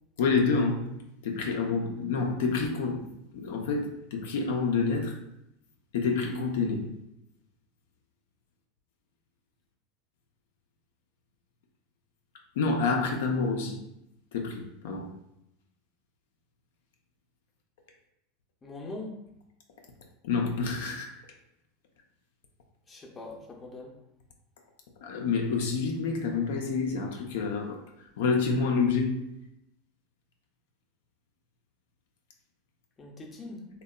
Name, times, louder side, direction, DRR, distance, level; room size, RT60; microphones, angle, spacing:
voice 1, 0.2-0.9 1.2-5.2 5.9-6.9 12.6-13.8 14.3-15.1 20.2-21.2 25.0-27.8 28.2-29.2, left 4 dB, 75° left, 1 dB, 0.3 m, -28 dB
voice 2, 18.6-19.2 22.9-23.9 33.0-33.7, left 2 dB, 25° left, 0 dB, 0.5 m, -41 dB
2.7 x 2.1 x 2.2 m, 0.83 s
hypercardioid pair, 100°, 0 cm